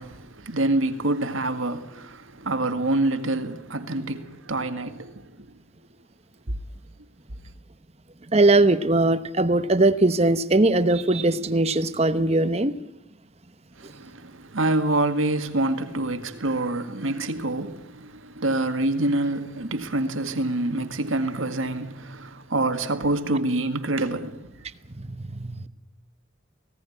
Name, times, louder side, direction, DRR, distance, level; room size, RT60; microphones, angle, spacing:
voice 1, 0.0-5.5 13.8-24.5, right 2 dB, 80° right, 1.9 m, -26 dB
voice 2, 8.3-12.7 25.0-25.7, right 2 dB, 30° right, 1.0 m, -20 dB
19.0 x 17.5 x 9.9 m
head